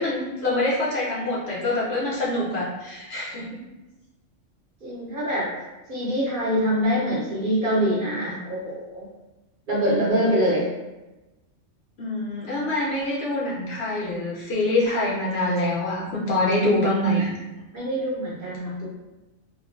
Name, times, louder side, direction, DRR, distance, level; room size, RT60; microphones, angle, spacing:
voice 1, 0.0-3.6 12.0-17.3, left 1 dB, 60° left, -5 dB, 0.8 m, -25 dB
voice 2, 4.8-5.5 5.9-9.0 9.7-10.6 17.2-17.3 17.7-18.9, equal, 50° right, -6 dB, 0.7 m, -24 dB
3.0 x 2.2 x 2.4 m, 1.0 s
omnidirectional pair, 1.4 m